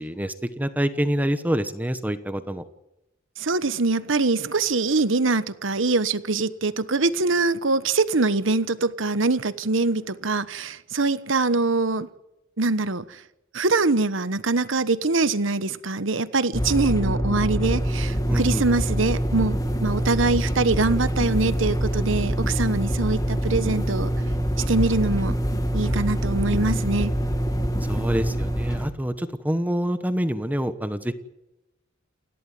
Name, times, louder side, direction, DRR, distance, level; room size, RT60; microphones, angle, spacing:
voice 1, 0.0-2.6 18.3-18.6 27.9-31.1, equal, 10° right, 10 dB, 1.1 m, -26 dB
voice 2, 3.4-12.1 12.6-13.2 13.5-24.1 24.7-25.3 25.7-27.1, right 3 dB, 65° right, 14 dB, 1.2 m, -23 dB
sound 1, 16.5-28.9, equal, 20° left, 2.1 m, -25 dB
29.5 x 12.0 x 9.2 m, 0.92 s
head